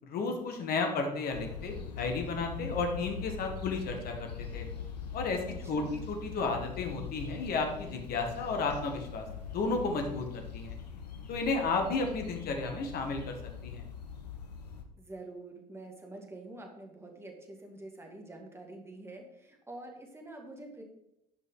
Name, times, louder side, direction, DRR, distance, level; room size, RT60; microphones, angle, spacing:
voice 1, 0.0-4.7 5.1-9.2 9.5-10.8 11.3-13.4 13.6-13.8, left 3 dB, 50° left, 3 dB, 1.7 m, -33 dB
sound 1, 1.3-14.8, left 7 dB, 85° left, 0.9 m, -42 dB
voice 2, 5.6-6.0 15.0-20.8, right 2 dB, 10° right, 2 dB, 2.0 m, -47 dB
10.5 x 5.4 x 3.8 m, 0.82 s
figure-of-eight pair, 65°, 21 cm